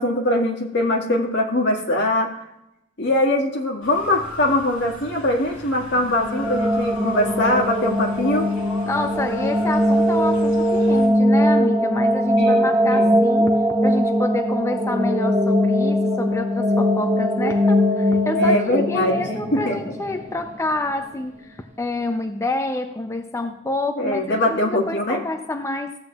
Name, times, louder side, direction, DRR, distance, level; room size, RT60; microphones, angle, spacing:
voice 1, 0.0-2.4 3.0-8.5 12.4-13.2 18.3-19.8 24.0-25.2, left 1 dB, 60° left, 0 dB, 1.8 m, -22 dB
Motor vehicle (road) / Siren, 3.8-11.1, left 2 dB, 75° left, 3.5 m, -39 dB
sound 1, 6.0-20.9, equal, 10° right, 1.5 m, -20 dB
voice 2, 8.8-26.0, left 2 dB, 15° left, 5 dB, 0.4 m, -28 dB
14.5 x 7.8 x 2.3 m, 0.89 s
head